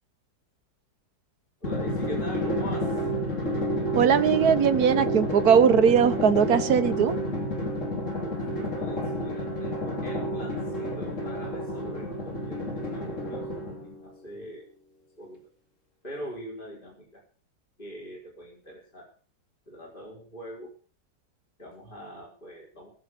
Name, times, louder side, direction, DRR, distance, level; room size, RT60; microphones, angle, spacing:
Drum, 1.6-14.0, equal, 45° left, 3.0 m, -30 dB
voice 1, 1.6-3.0 8.2-14.7 15.2-15.4 16.0-17.2 17.8-19.1 19.7-20.8 21.6-22.9, equal, 25° left, -2 dB, 4.9 m, -42 dB
voice 2, 3.9-7.1, right 7 dB, 60° right, 11 dB, 1.5 m, -20 dB
19.0 x 7.3 x 6.6 m, 0.40 s
omnidirectional pair, 1.9 m